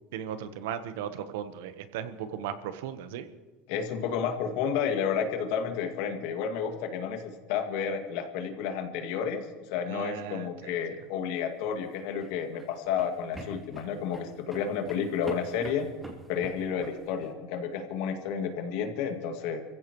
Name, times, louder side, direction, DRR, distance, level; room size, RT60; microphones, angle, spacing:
voice 1, 0.1-3.3 9.9-10.8, right 9 dB, 85° right, 11 dB, 1.2 m, -37 dB
voice 2, 3.7-15.9 16.3-19.6, left 7 dB, 75° left, 5 dB, 2.2 m, -31 dB
sound 1, 11.7-17.3, right 1 dB, 10° right, 2.9 m, -45 dB
25.0 x 15.5 x 3.2 m, 1.3 s
supercardioid pair, 115°, 0 cm